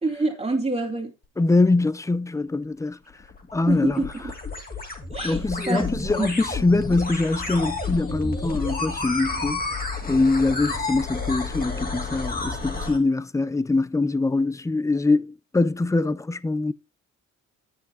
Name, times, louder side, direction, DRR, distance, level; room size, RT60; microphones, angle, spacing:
voice 1, 0.0-1.1 3.7-4.2 5.1-5.4 5.7-5.8 6.2-6.3, right 3 dB, 20° right, 2.2 m, -26 dB
voice 2, 1.4-3.0 3.5-4.1 5.2-16.7, left 3 dB, 10° left, 0.6 m, -23 dB
sound 1, 3.1-13.0, left 3 dB, 30° left, 2.4 m, -31 dB
10.5 x 7.1 x 4.3 m
cardioid pair, 90°, 30 cm